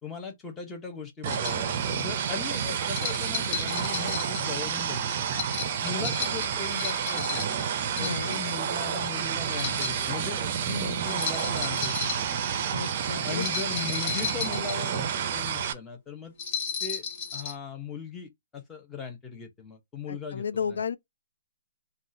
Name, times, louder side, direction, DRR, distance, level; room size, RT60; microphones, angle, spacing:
voice 1, 0.0-5.3 5.8-7.6 8.0-12.1 13.2-16.3 16.8-17.0 17.3-20.8, left 5 dB, 10° left, 0.7 m, -38 dB
sound 1, 1.2-15.7, right 8 dB, 35° right, 0.5 m, -30 dB
sound 2, 1.3-1.6 2.9-4.4 5.3-7.6 8.0-8.6 9.5-10.0 11.1-12.2 13.3-15.0 16.4-17.5, left 6 dB, 30° left, 1.2 m, -34 dB
voice 2, 8.0-8.4 12.7-13.5 20.1-21.0, left 6 dB, 75° left, 0.4 m, -33 dB
3.6 x 2.3 x 2.6 m
hypercardioid pair, 165°, 0 cm